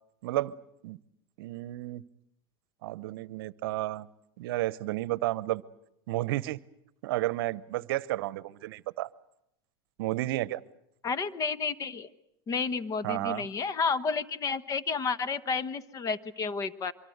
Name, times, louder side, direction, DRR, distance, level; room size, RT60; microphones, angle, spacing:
voice 1, 0.2-0.5 0.8-1.0 1.4-2.0 2.8-4.1 4.4-5.6 6.1-6.6 7.0-9.1 10.0-10.6 13.0-13.5, right 16 dB, 70° right, 20 dB, 0.9 m, -32 dB
voice 2, 11.0-12.1 12.5-16.9, left 5 dB, 25° left, 14 dB, 1.1 m, -31 dB
24.5 x 23.5 x 8.0 m, 0.81 s
supercardioid pair, 120°, 12 cm